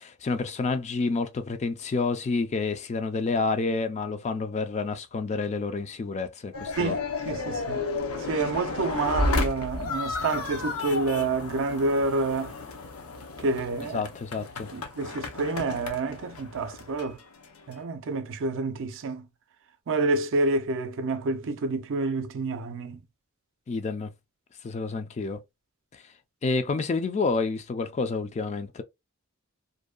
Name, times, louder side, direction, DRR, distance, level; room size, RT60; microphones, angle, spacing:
voice 1, 0.0-7.0 13.9-14.7 23.7-24.1 24.6-25.4 26.4-28.8, left 4 dB, 30° left, 0.3 m, -29 dB
sound 1, 6.5-17.8, left 3 dB, 80° left, 0.6 m, -32 dB
voice 2, 6.8-7.9 8.3-12.5 13.4-14.0 14.7-17.2 17.7-19.3 19.9-23.0, right 3 dB, 60° right, 0.4 m, -28 dB
2.6 x 2.2 x 2.3 m
head